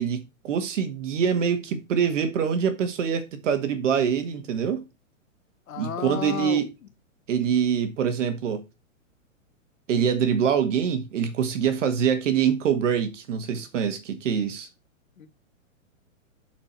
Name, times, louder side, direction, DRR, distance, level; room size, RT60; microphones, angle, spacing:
voice 1, 0.0-4.8 5.8-6.7 7.3-8.6 9.9-14.7, right 7 dB, 65° right, 1.6 m, -25 dB
voice 2, 5.7-6.6 15.2-15.3, left 9 dB, 90° left, 1.5 m, -32 dB
11.5 x 4.5 x 4.5 m
hypercardioid pair, 150°, 40 cm